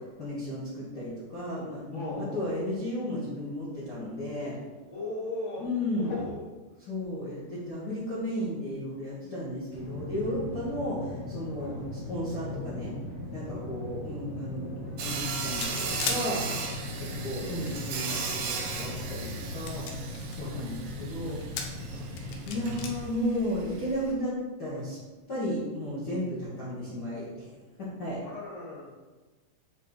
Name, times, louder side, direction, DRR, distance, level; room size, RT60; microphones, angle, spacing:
voice 1, 0.2-4.6 5.6-6.1 6.9-12.9 13.3-16.4 17.0-19.8 20.4-21.7 22.4-25.0 25.3-27.5 27.8-28.2, left 1 dB, 55° left, -9 dB, 1.1 m, -34 dB
voice 2, 1.9-2.5 4.9-5.6 5.9-6.3 10.7-10.8 11.6-11.8 13.5-13.8 16.9-17.1 20.4-20.6 21.9-22.0 28.1-28.9, left 2 dB, 40° left, -7 dB, 0.5 m, -38 dB
sound 1, 9.7-23.0, left 2 dB, 55° right, 0.9 m, -39 dB
Sawing, 15.0-24.1, right 5 dB, 80° right, 1.5 m, -37 dB
sound 2, 15.6-16.2 17.3-18.3 18.9-19.0 19.5-20.4 21.3-21.8 22.2-22.9, left 6 dB, 90° left, 2.4 m, -35 dB
8.2 x 2.9 x 4.0 m, 1.2 s
omnidirectional pair, 4.0 m